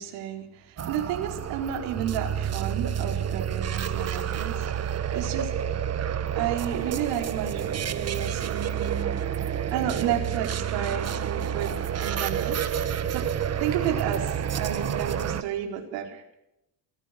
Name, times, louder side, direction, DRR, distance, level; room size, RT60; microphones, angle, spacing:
voice 1, 0.0-5.5 6.3-9.2 9.7-12.6 13.1-16.3, right 9 dB, 90° right, 3 dB, 4.5 m, -32 dB
sound 1, 0.8-15.4, right 9 dB, 35° right, 1.4 m, -29 dB
27.0 x 15.0 x 6.7 m, 0.85 s
cardioid pair, 125°, 42 cm